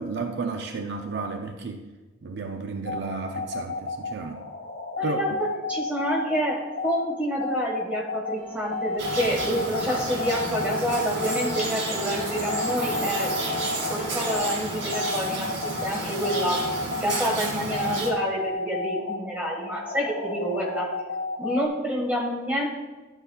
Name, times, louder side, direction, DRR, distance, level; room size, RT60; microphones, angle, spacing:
voice 1, 0.0-1.8 2.2-4.4 5.0-5.2, right 4 dB, 55° right, 4 dB, 0.5 m, -32 dB
sound 1, 2.9-21.7, left 3 dB, 55° left, 0.7 m, -33 dB
voice 2, 5.0-13.3 13.9-16.6 17.0-20.9 21.4-22.7, equal, 10° right, -2 dB, 1.5 m, -28 dB
Musical instrument, 8.4-14.4, equal, 20° left, 1.7 m, -38 dB
sound 2, 9.0-18.1, right 2 dB, 70° right, 2.0 m, -31 dB
11.0 x 7.9 x 2.3 m, 1.2 s
head